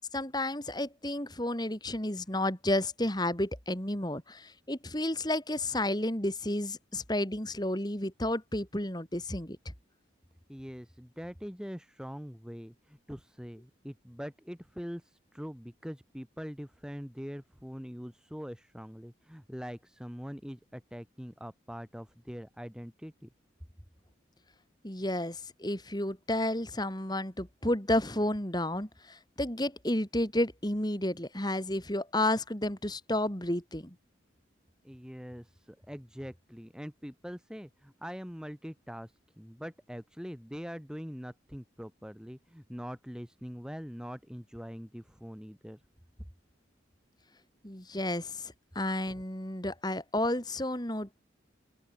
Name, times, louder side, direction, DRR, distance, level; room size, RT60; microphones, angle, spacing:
voice 1, 0.1-9.6 24.8-33.9 47.6-51.2, left 1 dB, 20° left, 3.3 m, -31 dB
voice 2, 10.5-23.3 34.8-45.8, equal, 5° right, 3.6 m, -43 dB
open air
head